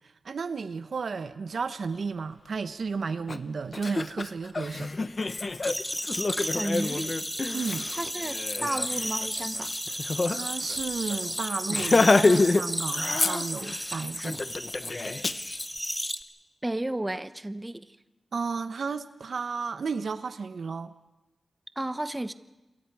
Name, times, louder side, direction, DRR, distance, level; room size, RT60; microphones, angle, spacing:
voice 1, 0.2-4.9 7.5-7.9 10.3-14.4 18.3-20.9, right 5 dB, 70° right, 0.8 m, -33 dB
Laughter, 3.3-3.4 3.7-10.4 10.7-10.8 11.1-11.3 11.7-12.6 12.9-13.8 14.2-15.7, left 3 dB, 45° left, 0.8 m, -27 dB
sound 1, 5.6-16.2, equal, 5° left, 1.2 m, -33 dB
voice 2, 6.4-7.1 7.9-9.7 16.6-17.9 21.8-22.3, right 1 dB, 20° right, 0.9 m, -33 dB
28.0 x 22.5 x 4.8 m
wide cardioid pair, 75°, 0 cm